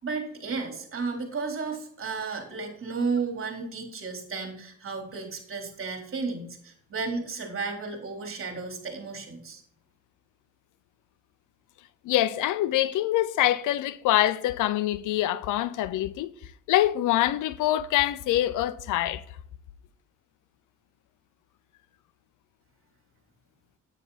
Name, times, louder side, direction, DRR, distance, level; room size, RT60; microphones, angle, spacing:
voice 1, 0.0-9.6, right 4 dB, 45° right, 3.9 m, -33 dB
voice 2, 12.0-16.3 16.7-19.2, left 14 dB, 90° left, 0.8 m, -25 dB
9.8 x 9.2 x 4.2 m
cardioid pair, 90°, 30 cm